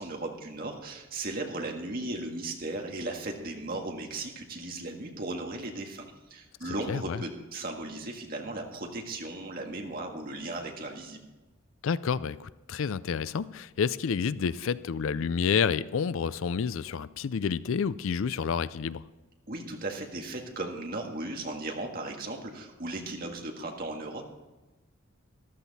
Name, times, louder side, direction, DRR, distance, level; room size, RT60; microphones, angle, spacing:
voice 1, 0.0-6.0 6.3-11.2 19.5-24.2, right 2 dB, 45° right, 2 dB, 1.7 m, -36 dB
voice 2, 6.6-7.2 11.8-19.1, left 6 dB, 70° left, 17 dB, 0.4 m, -29 dB
14.0 x 12.0 x 4.1 m, 1.1 s
head